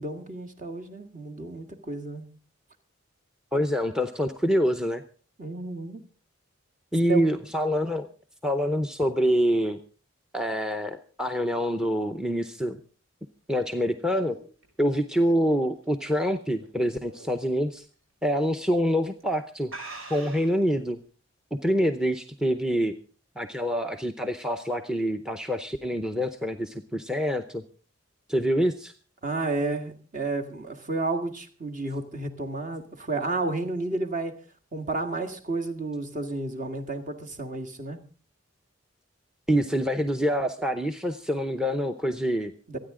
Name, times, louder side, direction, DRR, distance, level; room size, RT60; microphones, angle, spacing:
voice 1, 0.0-2.3 5.4-6.0 7.1-7.2 29.2-34.4 34.7-38.0 42.7-42.8, right 2 dB, 40° right, 4 dB, 1.8 m, -31 dB
voice 2, 3.5-5.0 6.9-8.1 8.4-9.8 10.3-12.8 13.5-14.4 14.8-17.9 18.2-19.7 20.1-21.0 21.5-22.9 23.4-27.6 28.3-28.9 39.5-42.5, equal, 5° right, 8 dB, 0.7 m, -26 dB
sound 1, 13.5-16.7 17.1-17.4 17.8-17.9 18.7-18.9 19.2-19.3 19.7-20.6, right 3 dB, 90° right, 6.0 m, -44 dB
26.5 x 9.7 x 3.7 m, 0.37 s
head